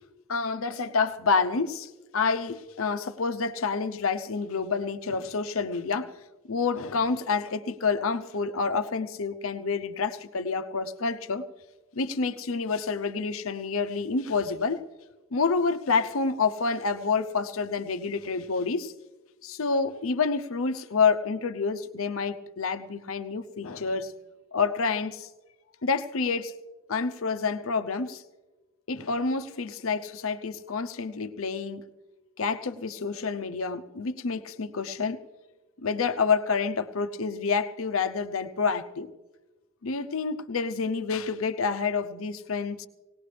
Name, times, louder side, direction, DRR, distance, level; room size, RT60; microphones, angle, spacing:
voice 1, 0.3-6.1 6.5-11.4 11.9-14.8 15.3-18.9 19.4-24.1 24.5-25.3 25.8-26.5 26.9-28.2 28.9-31.9 32.4-35.2 35.8-39.1 39.8-42.9, left 4 dB, 75° left, 10 dB, 0.7 m, -28 dB
19.0 x 18.5 x 3.3 m, 1.1 s
head